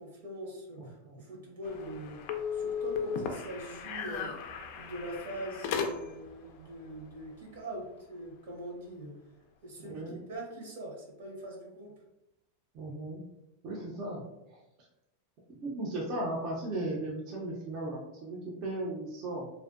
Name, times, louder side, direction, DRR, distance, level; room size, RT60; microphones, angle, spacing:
voice 1, 0.0-2.2 2.5-4.3 4.7-9.1 9.6-10.0 10.3-11.9, right 1 dB, 80° right, -1 dB, 0.9 m, -42 dB
voice 2, 0.8-1.2 9.8-10.2 12.7-13.2 13.6-14.2 14.5-14.6 15.5-19.5, right 2 dB, 40° right, -3 dB, 0.5 m, -36 dB
sound 1, 1.6-6.3, left 6 dB, 50° left, 0.3 m, -36 dB
2.5 x 2.1 x 2.4 m, 0.88 s
supercardioid pair, 150°, 0 cm